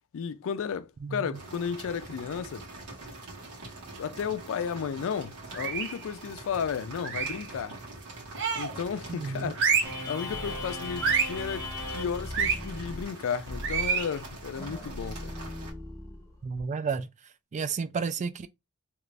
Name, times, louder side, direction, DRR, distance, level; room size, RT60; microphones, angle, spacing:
voice 1, 0.1-2.7 4.0-7.8 8.5-9.6 10.1-15.4, left 7 dB, 65° left, 0.4 m, -33 dB
voice 2, 1.0-1.4 9.1-9.5 16.4-17.1 17.5-18.5, right 5 dB, 30° right, 0.3 m, -32 dB
sound 1, 1.3-15.7, right 2 dB, 75° right, 1.5 m, -44 dB
sound 2, 5.5-6.0 7.0-7.5 8.3-8.8 9.5-10.0 11.0-11.4 12.3-12.6 13.6-14.1, right 6 dB, 60° right, 0.9 m, -27 dB
sound 3, 9.8-16.6, left 2 dB, 15° left, 0.8 m, -38 dB
2.9 x 2.5 x 3.2 m
head